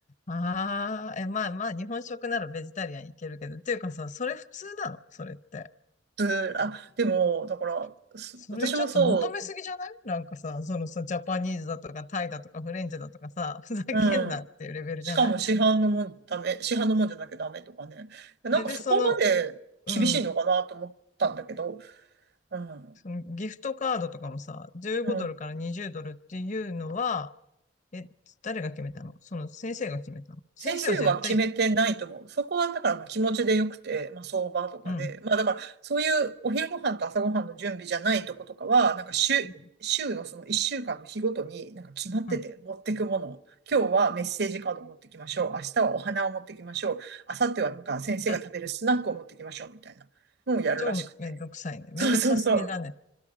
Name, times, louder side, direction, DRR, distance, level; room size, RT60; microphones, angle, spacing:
voice 1, 0.3-5.7 8.4-15.3 18.5-19.2 19.9-20.3 23.0-27.3 27.9-28.1 28.4-31.4 34.8-35.1 39.4-39.5 42.3-42.4 48.3-48.4 50.8-52.9, left 3 dB, 45° left, 0.8 m, -33 dB
voice 2, 6.2-9.3 13.9-14.4 15.0-19.5 19.9-20.9 21.2-21.9 22.5-22.9 25.1-25.3 30.6-39.5 39.8-43.4 43.7-49.9 50.5-50.9 52.0-52.7, right 4 dB, 65° right, 0.7 m, -27 dB
26.0 x 25.5 x 5.0 m
head